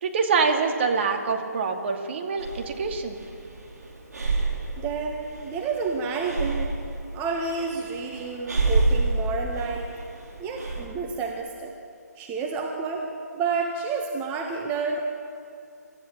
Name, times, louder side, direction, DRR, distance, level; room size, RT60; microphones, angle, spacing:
voice 1, 0.0-3.2, right 5 dB, 40° right, 3 dB, 2.4 m, -25 dB
Breathing, 2.4-10.9, right 3 dB, 65° right, 4.9 m, -29 dB
voice 2, 4.8-6.7 7.1-9.9 10.4-11.7 12.2-13.1 13.3-15.0, right 4 dB, 15° right, 1 dB, 1.6 m, -30 dB
27.0 x 14.0 x 7.4 m, 2.5 s
figure-of-eight pair, 145°, 10 cm